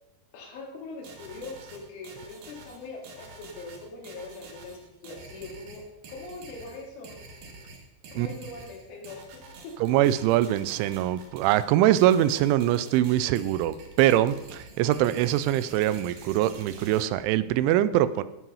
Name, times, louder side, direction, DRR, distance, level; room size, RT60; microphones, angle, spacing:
voice 1, 0.3-7.1 8.1-9.8, left 3 dB, 90° left, -1 dB, 4.9 m, -42 dB
sound 1, 1.0-17.0, right 3 dB, 60° right, 2.8 m, -47 dB
voice 2, 9.8-18.2, right 13 dB, 90° right, 14 dB, 3.0 m, -23 dB
16.0 x 5.8 x 5.5 m, 0.95 s
omnidirectional pair, 5.3 m